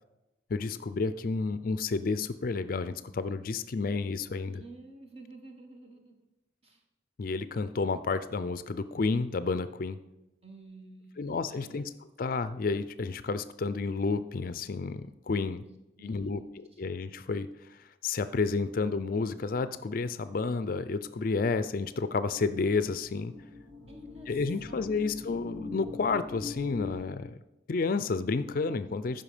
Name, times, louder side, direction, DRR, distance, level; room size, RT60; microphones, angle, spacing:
voice 1, 0.5-4.6 7.2-10.0 11.2-11.9 12.2-15.6 16.0-23.3 24.3-27.4 27.7-29.2, left 4 dB, 45° left, 13 dB, 0.4 m, -31 dB
voice 2, 4.5-6.1 6.6-6.8 10.4-11.9 15.6-16.8 23.9-24.3 24.7-25.0, right 2 dB, 30° right, 3 dB, 1.4 m, -51 dB
sound 1, 21.8-26.9, left 4 dB, 80° right, 3.7 m, -43 dB
14.0 x 5.6 x 5.0 m, 0.96 s
head